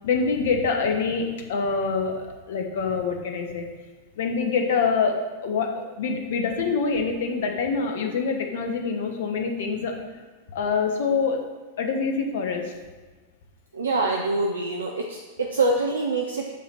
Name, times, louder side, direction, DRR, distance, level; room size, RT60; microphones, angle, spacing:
voice 1, 0.0-3.6 4.2-10.0 10.5-11.4 11.8-12.7, left 5 dB, 55° left, 3 dB, 0.9 m, -25 dB
voice 2, 13.7-16.5, right 2 dB, 75° right, 0 dB, 0.5 m, -25 dB
7.3 x 2.9 x 5.7 m, 1.3 s
figure-of-eight pair, 90°, 0 cm